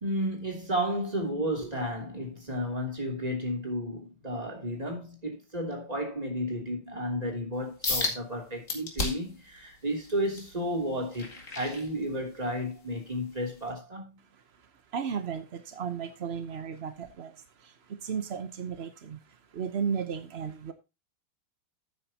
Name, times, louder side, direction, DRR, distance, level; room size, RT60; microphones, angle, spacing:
voice 1, 0.0-14.1, equal, 15° right, 3.0 m, -32 dB
sound 1, 7.8-8.2 8.7-9.4 9.9-12.4 12.9-13.2 13.7-13.8, left 3 dB, 35° left, 2.5 m, -33 dB
voice 2, 14.3-20.7, right 7 dB, 65° right, 0.6 m, -35 dB
11.5 x 8.9 x 2.9 m
omnidirectional pair, 2.4 m